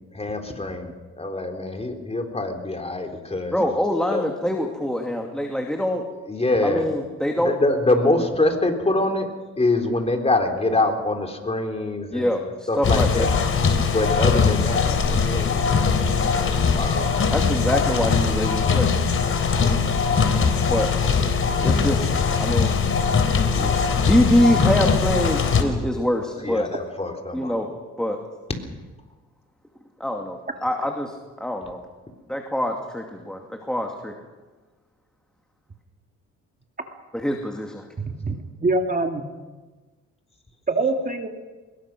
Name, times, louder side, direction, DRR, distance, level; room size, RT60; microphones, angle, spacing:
voice 1, 0.1-0.9 1.2-3.6 4.1-4.3 6.3-6.8 7.3-9.3 9.6-12.3 12.7-13.3 13.9-16.5 16.7-17.3 26.4-27.5, left 2 dB, 20° left, 3 dB, 3.9 m, -24 dB
voice 2, 3.5-6.0 6.6-7.5 12.1-13.3 17.3-18.9 20.6-20.9 21.6-22.1 22.4-22.7 23.6-23.7 24.0-26.7 27.3-27.7 28.0-28.2 30.0-31.8 32.3-34.1 37.1-37.8, left 1 dB, ahead, 2 dB, 2.5 m, -24 dB
sound 1, 12.8-25.6, left 5 dB, 45° left, 3.7 m, -21 dB
voice 3, 38.0-39.2 40.7-41.3, right 3 dB, 30° right, 4 dB, 2.2 m, -24 dB
23.5 x 21.5 x 6.2 m, 1.3 s
cardioid pair, 90°, 30 cm